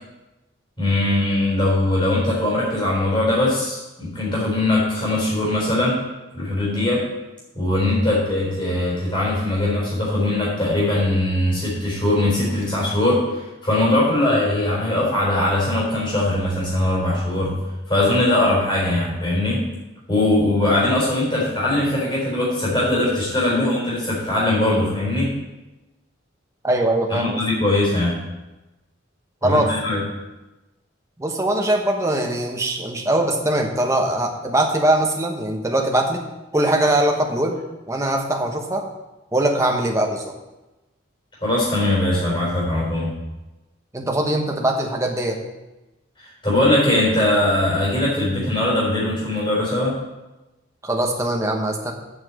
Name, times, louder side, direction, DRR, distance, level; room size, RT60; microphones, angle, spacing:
voice 1, 0.8-6.0 6.3-7.1 7.5-17.6 17.9-19.6 20.1-25.3 27.1-28.2 29.4-30.0 41.4-43.1 46.4-49.9, left 1 dB, 25° left, -5 dB, 3.9 m, -21 dB
voice 2, 26.6-27.4 29.4-29.7 31.2-36.2 36.5-37.6 37.9-38.9 39.3-40.3 43.9-45.4 50.8-51.9, right 1 dB, 15° right, 1 dB, 1.0 m, -21 dB
8.0 x 5.9 x 7.5 m, 1.0 s
head